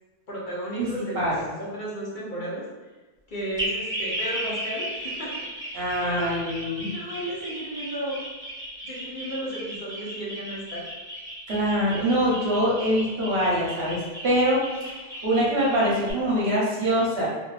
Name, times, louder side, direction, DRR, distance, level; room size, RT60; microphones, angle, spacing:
voice 1, 0.3-2.7 3.3-5.5 5.7-6.2 6.6-8.3 8.8-10.9, right 1 dB, 55° left, -6 dB, 0.8 m, -34 dB
voice 2, 1.1-1.5 5.7-6.9 11.5-14.0 14.2-14.6 14.8-15.0 15.2-17.3, equal, 75° right, -5 dB, 1.1 m, -24 dB
sound 1, 3.6-16.1, right 1 dB, 5° left, 0.7 m, -35 dB
2.5 x 2.5 x 2.3 m, 1.2 s
omnidirectional pair, 1.1 m